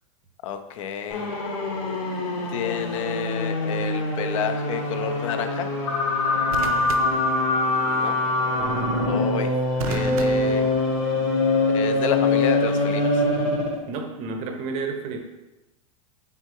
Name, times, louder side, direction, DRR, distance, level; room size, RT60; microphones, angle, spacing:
voice 1, 0.4-1.4 2.5-5.7 7.8-8.2 9.1-9.5 9.9-10.7 11.7-13.2, left 9 dB, 65° left, 8 dB, 0.5 m, -30 dB
sound 1, 1.1-13.8, left 2 dB, 80° left, 1.0 m, -24 dB
sound 2, 2.6-3.0 6.5-8.0 9.8-11.5 12.7-13.0, right 7 dB, 85° right, 0.4 m, -36 dB
voice 2, 13.9-15.2, right 4 dB, 35° right, 5 dB, 0.5 m, -31 dB
3.6 x 3.5 x 2.9 m, 1.0 s
supercardioid pair, 140°, 18 cm